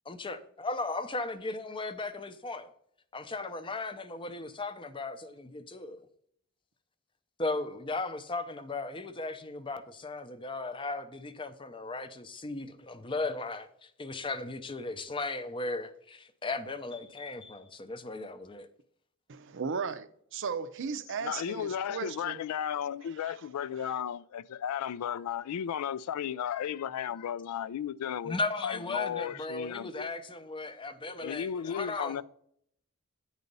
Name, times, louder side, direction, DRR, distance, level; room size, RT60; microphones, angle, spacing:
voice 1, 0.1-2.7 3.1-6.0 7.4-18.7 28.2-32.2, left 3 dB, 25° left, 0.6 m, -36 dB
voice 2, 19.3-22.4 23.2-23.3 23.8-23.9, right 5 dB, 55° right, 0.5 m, -36 dB
voice 3, 21.2-28.4 28.6-30.1 31.2-32.2, left 9 dB, 85° left, 0.3 m, -34 dB
9.6 x 4.0 x 5.3 m
head